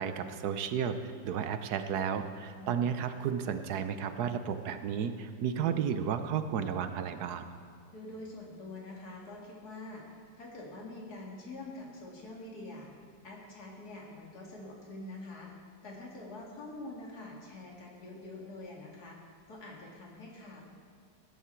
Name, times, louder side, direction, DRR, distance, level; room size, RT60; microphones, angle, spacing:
voice 1, 0.0-7.5, right 7 dB, 70° right, 9 dB, 1.2 m, -33 dB
voice 2, 2.5-2.8 7.9-12.9 13.2-15.5 15.8-20.6, left 2 dB, 60° left, -1 dB, 2.7 m, -45 dB
16.5 x 11.0 x 4.5 m, 2.3 s
omnidirectional pair, 1.9 m